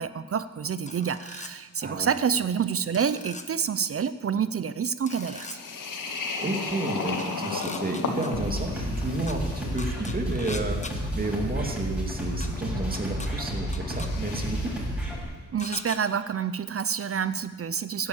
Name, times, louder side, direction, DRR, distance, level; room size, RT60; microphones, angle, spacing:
voice 1, 0.0-5.6 15.5-18.1, right 7 dB, 45° right, 13 dB, 0.6 m, -28 dB
sound 1, 0.9-1.5 2.9-3.4 5.1-5.6 7.2-8.3 9.3-9.4 9.8-10.9 12.4-12.5 12.9-13.3 13.7-14.1 15.6-16.0, left 3 dB, 20° left, 1.1 m, -40 dB
voice 2, 1.8-2.1 6.4-14.7, right 2 dB, 30° right, 2 dB, 2.4 m, -31 dB
sound 2, 5.1-14.9, left 4 dB, 80° left, 2.4 m, -37 dB
sound 3, 8.3-15.2, equal, 5° right, 7.0 m, -31 dB
16.0 x 11.0 x 8.2 m, 1.4 s
wide cardioid pair, 120°, 31 cm